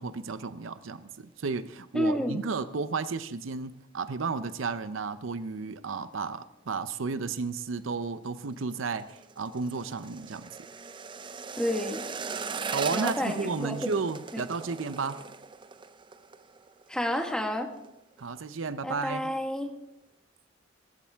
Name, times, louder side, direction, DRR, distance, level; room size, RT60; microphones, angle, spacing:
voice 1, 0.0-10.5 12.4-15.2 18.2-19.3, right 4 dB, 80° right, 13 dB, 0.6 m, -33 dB
voice 2, 1.9-2.5 11.6-12.0 12.9-13.9 14.3-14.4 16.9-17.7 18.8-19.7, left 1 dB, 5° left, 3 dB, 1.4 m, -30 dB
sound 1, 8.2-17.3 17.6-17.9 18.2-18.7 19.1-19.2, right 5 dB, 25° right, 0.5 m, -39 dB
16.0 x 14.5 x 3.5 m, 0.84 s
head